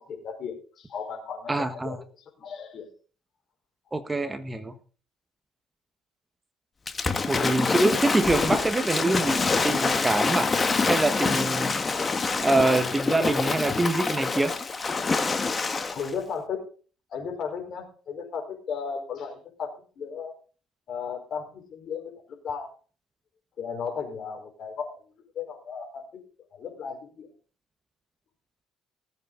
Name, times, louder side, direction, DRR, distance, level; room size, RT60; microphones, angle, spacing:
voice 1, 0.0-2.0 2.4-2.9 10.2-10.3 15.9-16.6 17.1-19.7 20.0-20.3 20.9-22.1 22.4-22.7 23.6-25.0 25.3-26.0 26.5-27.3, left 6 dB, 55° left, 4 dB, 4.5 m, -35 dB
voice 2, 1.5-2.0 3.9-4.7 7.3-10.5 10.9-12.0 12.4-14.5, right 2 dB, 15° right, 9 dB, 1.4 m, -25 dB
Waves surf / Splash splatter, 6.9-16.1, left 4 dB, 25° left, 1.6 m, -26 dB
18.5 x 8.3 x 3.9 m, 0.39 s
supercardioid pair, 90°, 0 cm